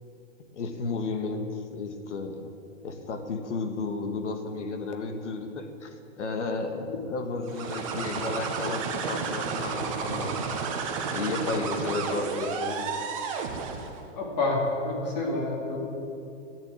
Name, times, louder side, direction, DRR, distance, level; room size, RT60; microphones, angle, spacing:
voice 1, 0.5-2.4 2.8-10.4 11.1-13.0, left 3 dB, 65° left, 7 dB, 1.6 m, -33 dB
sound 1, 7.4-14.0, right 5 dB, 25° right, 1.0 m, -32 dB
voice 2, 14.1-15.8, left 2 dB, 30° left, 0 dB, 2.6 m, -28 dB
12.5 x 9.4 x 8.4 m, 2.7 s
hypercardioid pair, 170°, 39 cm